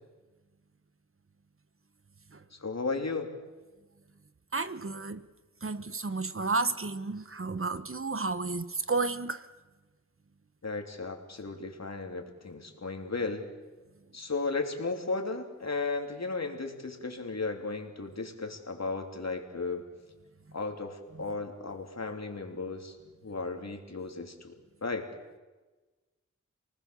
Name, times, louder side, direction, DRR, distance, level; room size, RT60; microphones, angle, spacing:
voice 1, 2.5-3.3 10.6-13.5 14.1-19.9 20.5-23.0 23.2-24.5 24.8-25.1, left 3 dB, 60° left, 3.3 m, -35 dB
voice 2, 4.5-5.2 5.6-9.4, right 3 dB, 45° right, 1.1 m, -32 dB
29.5 x 19.5 x 7.0 m
wide cardioid pair, 60°, 30 cm